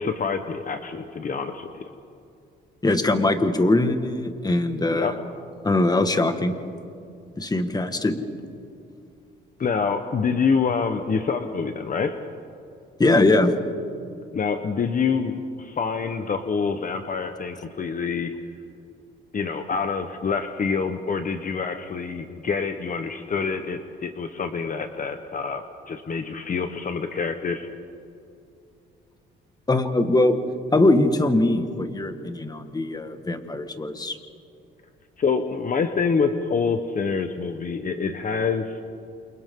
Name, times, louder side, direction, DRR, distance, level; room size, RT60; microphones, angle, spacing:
voice 1, 0.0-1.8 4.9-5.1 9.6-12.2 14.3-18.3 19.3-27.7 35.2-38.8, left 5 dB, 40° left, 7 dB, 1.2 m, -26 dB
voice 2, 2.8-5.1 5.6-6.6 7.4-8.2 13.0-13.5 29.7-30.4 30.7-34.2, left 2 dB, 20° left, 7 dB, 1.7 m, -21 dB
28.5 x 28.5 x 3.8 m, 2.5 s
cardioid pair, 90°, 20 cm